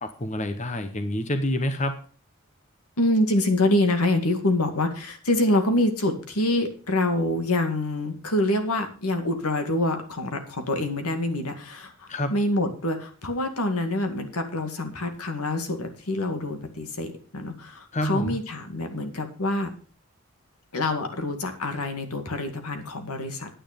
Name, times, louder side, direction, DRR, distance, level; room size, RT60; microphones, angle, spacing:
voice 1, 0.0-2.1 12.1-12.3 17.9-18.4, left 1 dB, 30° left, 9 dB, 0.9 m, -27 dB
voice 2, 3.0-19.7 20.7-23.5, left 1 dB, 85° left, 6 dB, 2.1 m, -26 dB
10.0 x 9.3 x 5.1 m, 0.38 s
head